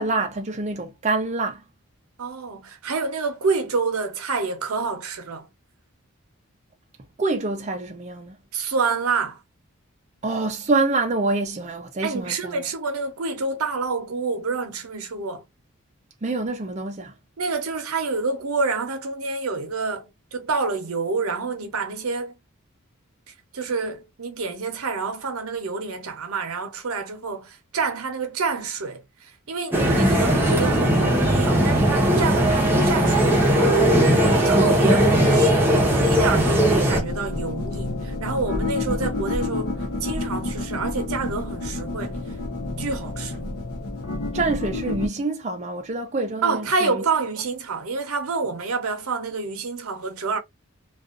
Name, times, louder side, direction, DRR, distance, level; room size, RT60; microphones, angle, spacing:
voice 1, 0.0-1.6 7.2-8.4 10.2-12.6 16.2-17.2 44.3-47.0, right 3 dB, 30° right, 0.4 m, -26 dB
voice 2, 2.2-5.5 8.5-9.4 12.0-15.5 17.4-22.4 23.5-33.8 34.1-42.4 42.8-43.4 46.4-50.4, right 4 dB, 85° right, 0.7 m, -28 dB
sound 1, 29.7-37.0, equal, 10° right, 0.8 m, -18 dB
sound 2, 36.9-45.1, left 2 dB, 85° left, 0.8 m, -29 dB
2.4 x 2.4 x 2.4 m
head